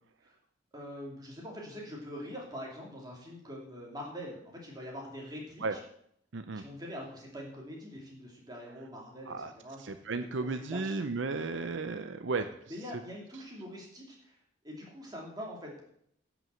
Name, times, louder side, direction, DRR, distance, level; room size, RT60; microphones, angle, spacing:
voice 1, 0.7-5.8 6.5-11.1 12.7-14.4 14.6-15.8, equal, 20° right, -2 dB, 2.9 m, -44 dB
voice 2, 6.3-6.6 9.3-9.5 9.8-12.5, right 3 dB, 70° right, 8 dB, 0.6 m, -34 dB
11.0 x 6.1 x 7.6 m, 0.70 s
head